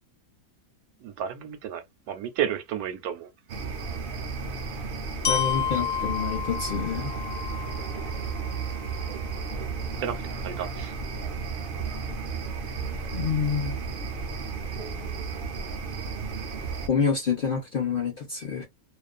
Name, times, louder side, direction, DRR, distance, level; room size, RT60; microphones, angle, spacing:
voice 1, 1.0-3.3 10.0-10.9, right 9 dB, 85° right, 1.1 m, -32 dB
sound 1, 3.5-16.9, right 4 dB, 65° right, 0.5 m, -33 dB
Glockenspiel, 5.2-9.2, left 8 dB, 85° left, 1.2 m, -31 dB
voice 2, 5.3-7.1 13.1-14.0 16.9-18.7, left 6 dB, 60° left, 0.5 m, -27 dB
2.5 x 2.4 x 2.3 m
omnidirectional pair, 1.5 m